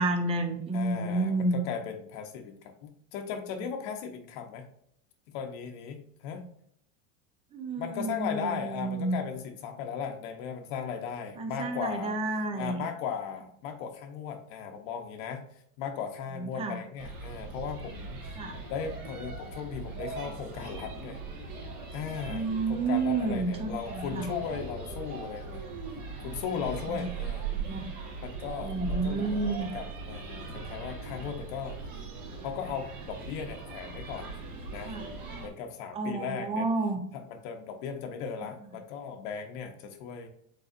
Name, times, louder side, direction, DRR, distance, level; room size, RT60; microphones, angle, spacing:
voice 1, 0.0-1.6 7.5-9.2 11.4-12.8 16.3-16.8 18.4-18.6 22.3-24.3 26.9-27.1 27.5-27.9 28.6-29.7 34.8-35.1 35.9-37.0, right 3 dB, 15° right, 7 dB, 0.4 m, -30 dB
voice 2, 0.7-4.6 5.3-6.4 7.8-12.1 12.5-18.4 18.7-21.2 21.9-25.6 26.2-27.5 28.2-31.8 32.2-34.3 34.7-34.9 35.3-36.7 37.1-40.3, left 7 dB, 55° left, 5 dB, 0.8 m, -37 dB
sound 1, 17.0-35.5, right 4 dB, 45° right, 1.6 m, -39 dB
5.3 x 4.0 x 2.4 m, 0.68 s
supercardioid pair, 140°, 43 cm